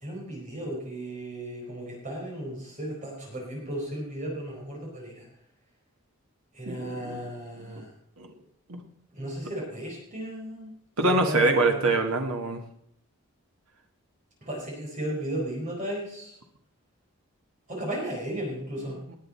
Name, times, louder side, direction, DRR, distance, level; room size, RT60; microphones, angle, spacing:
voice 1, 0.0-5.3 6.5-7.9 9.1-10.7 11.0-11.8 14.4-16.3 17.7-19.0, right 1 dB, 35° right, -2 dB, 4.4 m, -35 dB
voice 2, 6.6-7.2 7.6-7.8 8.2-8.3 8.7-8.8 11.0-12.6 19.1-19.2, right 2 dB, 80° right, 3 dB, 1.6 m, -25 dB
19.5 x 9.0 x 4.3 m, 0.68 s
head